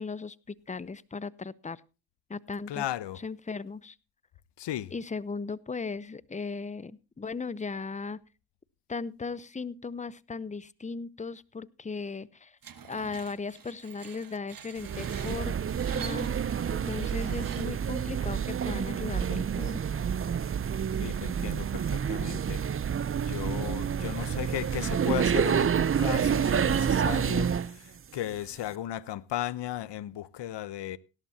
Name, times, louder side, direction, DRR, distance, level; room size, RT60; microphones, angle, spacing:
voice 1, 0.0-1.8 2.3-2.8 3.2-4.0 4.9-8.2 8.9-12.6 12.9-15.6 15.9-16.3 16.7-19.8, left 4 dB, 15° left, 0.7 m, -37 dB
voice 2, 2.7-3.2 4.6-4.9 20.9-22.6 23.2-31.0, left 13 dB, 65° left, 0.9 m, -36 dB
Screech, 12.6-17.9, right 8 dB, 45° right, 1.4 m, -47 dB
sound 1, 14.8-27.7, right 7 dB, 30° right, 0.6 m, -28 dB
17.5 x 11.5 x 2.8 m
supercardioid pair, 55°, 45 cm